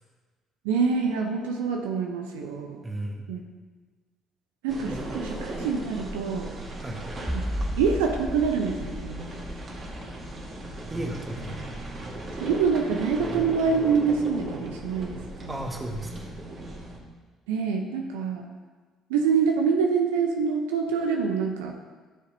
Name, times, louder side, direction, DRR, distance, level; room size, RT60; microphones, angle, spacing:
voice 1, 0.6-2.8 3.3-3.4 4.6-6.5 7.8-9.4 12.4-15.5 17.5-18.4 19.1-21.7, right 5 dB, 80° right, 3 dB, 0.7 m, -26 dB
voice 2, 2.8-3.3 4.9-5.0 6.8-7.1 10.9-11.7 15.5-16.3, right 1 dB, 20° right, 2 dB, 1.5 m, -35 dB
sound 1, 4.7-17.0, right 1 dB, 40° right, 1.8 m, -37 dB
sound 2, 7.3-14.5, equal, 5° right, 0.5 m, -37 dB
13.0 x 6.5 x 2.8 m, 1.4 s
hypercardioid pair, 55°, 0 cm